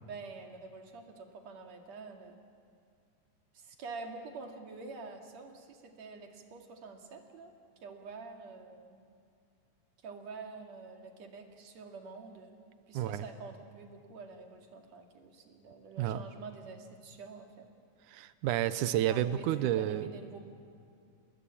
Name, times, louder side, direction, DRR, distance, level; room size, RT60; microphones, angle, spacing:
voice 1, 0.0-2.4 3.5-7.5 7.8-9.0 10.0-12.5 12.9-17.7 19.1-20.4, right 4 dB, 50° right, 3 dB, 3.2 m, -47 dB
voice 2, 12.9-13.3 16.0-16.2 18.1-20.1, right 12 dB, 75° right, 13 dB, 2.1 m, -30 dB
29.0 x 20.5 x 8.7 m, 2.5 s
omnidirectional pair, 4.2 m